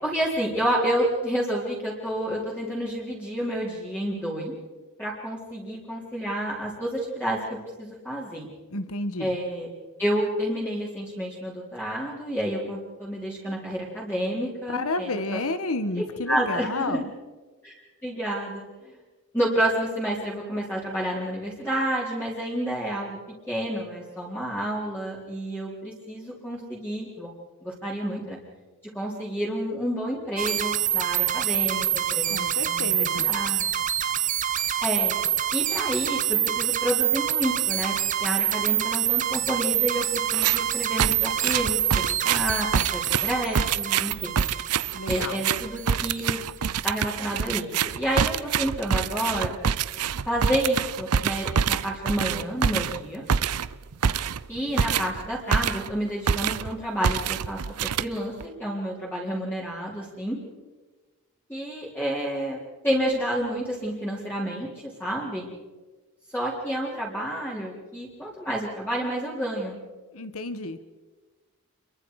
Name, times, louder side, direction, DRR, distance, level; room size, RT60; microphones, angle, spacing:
voice 1, 0.0-4.5 5.0-8.5 9.2-9.7 10.0-15.4 15.9-17.0 17.6-17.7 18.0-18.7 19.3-23.2 23.5-27.3 27.6-28.4 28.9-33.7 34.8-35.2 35.5-37.9 38.2-44.4 45.1-46.4 46.8-49.5 50.3-53.2 54.5-57.6 58.0-60.4 61.5-64.7 65.0-65.5 66.3-69.8, equal, 10° left, -6 dB, 4.0 m, -29 dB
voice 2, 8.7-9.4 14.7-17.1 32.3-33.3 44.9-45.4 70.1-70.8, left 2 dB, 70° left, 11 dB, 1.5 m, -31 dB
sound 1, 30.4-46.2, right 11 dB, 35° right, 1.0 m, -26 dB
sound 2, 40.3-40.7 41.0-56.0 56.3-56.7 57.0-58.4, right 7 dB, 90° right, 0.6 m, -26 dB
29.0 x 22.5 x 5.0 m, 1.3 s
head